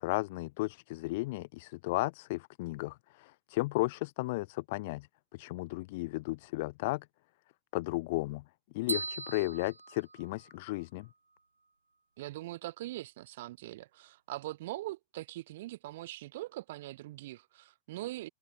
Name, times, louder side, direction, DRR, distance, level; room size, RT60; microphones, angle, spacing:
voice 1, 0.0-5.1 5.3-7.0 7.7-8.4 8.7-11.1, left 22 dB, 50° left, 0.5 m, -34 dB
sound 1, 8.9-10.8, right 3 dB, 80° right, 0.5 m, -39 dB
voice 2, 12.2-18.3, right 16 dB, 55° right, 0.8 m, -42 dB
open air
figure-of-eight pair, 90°, 0 cm